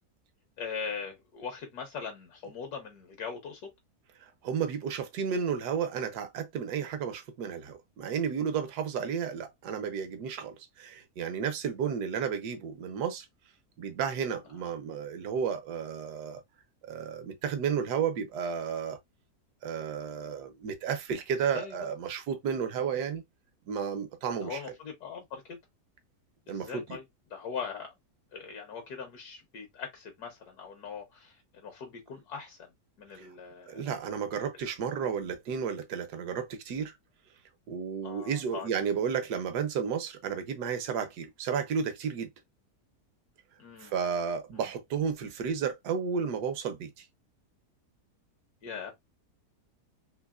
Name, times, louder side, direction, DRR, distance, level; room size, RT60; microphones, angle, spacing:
voice 1, 0.6-3.7 21.5-21.9 24.4-25.6 26.5-27.0 27.3-27.9 28.3-32.7 33.0-33.8 38.0-38.7 43.6-43.9 44.5-44.6 48.6-48.9, left 6 dB, 75° left, 1.4 m, -40 dB
voice 2, 4.2-13.3 13.8-16.4 16.9-19.0 19.6-23.2 23.7-24.6 26.5-27.0 33.1-33.3 33.7-36.9 37.7-42.3 43.8-47.0, right 7 dB, 80° right, 1.3 m, -32 dB
3.8 x 2.8 x 2.3 m
omnidirectional pair, 1.7 m